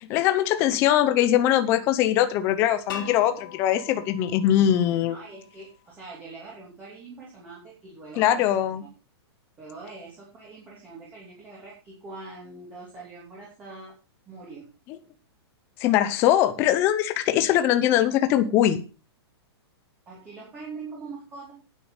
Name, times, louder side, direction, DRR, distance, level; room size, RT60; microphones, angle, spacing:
voice 1, 0.0-5.2 8.2-8.8 15.8-18.8, left 12 dB, 15° left, 10 dB, 0.8 m, -21 dB
sound 1, 2.9-5.8, left 9 dB, 50° left, 2.4 m, -41 dB
voice 2, 5.0-8.5 9.6-13.9 14.3-14.7 17.3-17.6 20.1-21.6, right 3 dB, 10° right, -4 dB, 2.9 m, -43 dB
10.0 x 9.3 x 5.5 m, 0.34 s
hypercardioid pair, 180°, 14 cm